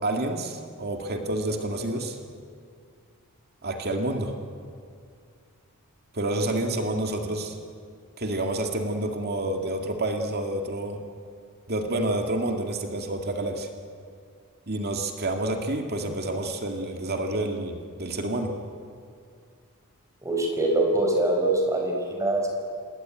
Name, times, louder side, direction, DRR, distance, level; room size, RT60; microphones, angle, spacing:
voice 1, 0.0-2.2 3.6-4.3 6.1-7.6 8.2-11.0 11.7-13.7 14.7-18.5, right 1 dB, 45° right, 4 dB, 2.1 m, -28 dB
voice 2, 20.2-22.5, right 2 dB, 15° right, 1 dB, 5.4 m, -24 dB
27.0 x 21.0 x 9.1 m, 2.3 s
head